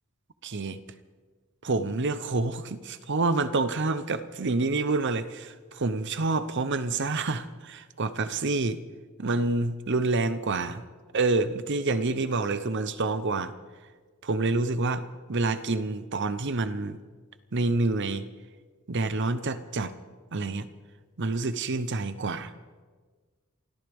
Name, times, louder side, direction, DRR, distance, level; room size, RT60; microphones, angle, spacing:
voice 1, 0.4-0.8 1.6-8.8 9.2-10.8 11.1-13.5 14.2-17.0 17.5-18.2 18.9-19.9 20.3-20.7 21.2-22.5, right 3 dB, 55° right, 12 dB, 0.8 m, -28 dB
29.0 x 13.5 x 3.5 m, 1.4 s
head